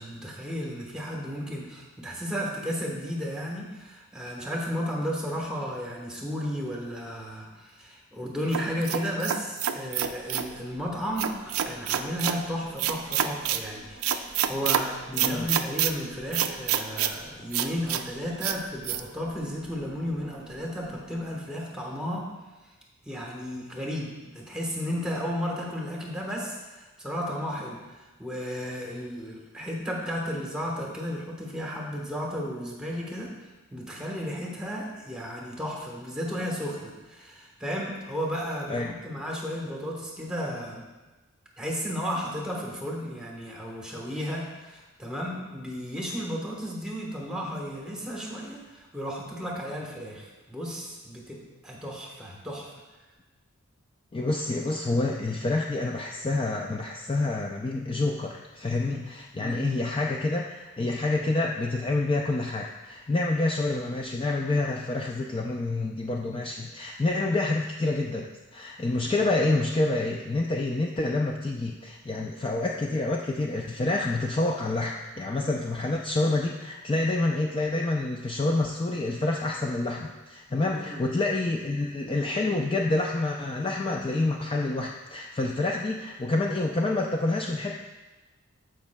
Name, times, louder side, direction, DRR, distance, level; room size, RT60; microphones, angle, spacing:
voice 1, 0.0-22.3 23.0-33.3 33.7-40.8 41.6-52.7 59.3-59.8 80.6-81.0, equal, 5° right, -2 dB, 1.1 m, -34 dB
sound 1, 8.5-10.5 11.2-12.4 12.8-13.6 14.0-14.8 15.2-15.9 16.3-17.1 17.5-18.0 18.4-18.6 18.8-19.0, right 10 dB, 80° right, 0.4 m, -27 dB
sound 2, 10.0-21.2, right 1 dB, 55° left, 1.4 m, -51 dB
voice 2, 15.2-15.5 38.7-38.9 54.1-87.8, left 2 dB, 25° left, 0 dB, 0.3 m, -28 dB
14.0 x 5.3 x 2.2 m, 1.2 s
head